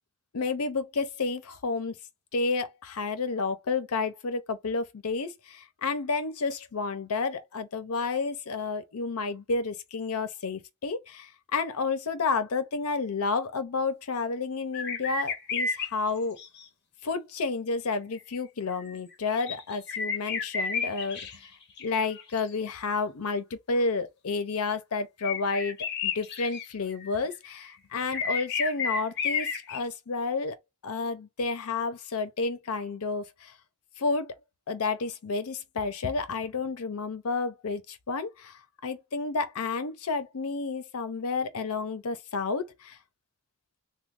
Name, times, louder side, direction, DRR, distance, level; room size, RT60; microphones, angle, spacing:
voice 1, 0.3-2.0 2.3-16.4 17.0-21.5 21.8-25.8 26.0-30.6 30.8-33.5 34.0-34.3 34.7-43.0, left 4 dB, 80° left, 0.6 m, -31 dB
sound 1, 14.7-15.9 16.4-16.7 18.7-21.5 21.8-22.5 25.2-26.7 26.9-27.7 28.1-29.8, left 5 dB, 50° left, 0.8 m, -32 dB
3.0 x 2.2 x 3.6 m
head